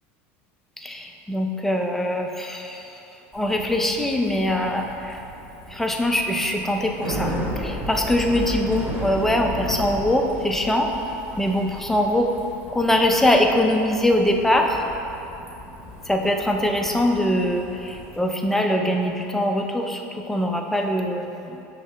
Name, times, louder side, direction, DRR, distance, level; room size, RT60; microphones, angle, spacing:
voice 1, 0.8-3.0 3.3-5.2 5.7-11.0 11.4-12.3 12.7-14.8 16.1-21.6, left 1 dB, 5° left, 2 dB, 0.4 m, -22 dB
Bicycle, 3.3-18.2, equal, 25° right, 1.2 m, -35 dB
5.7 x 2.8 x 3.2 m, 2.9 s
supercardioid pair, 110°, 7 cm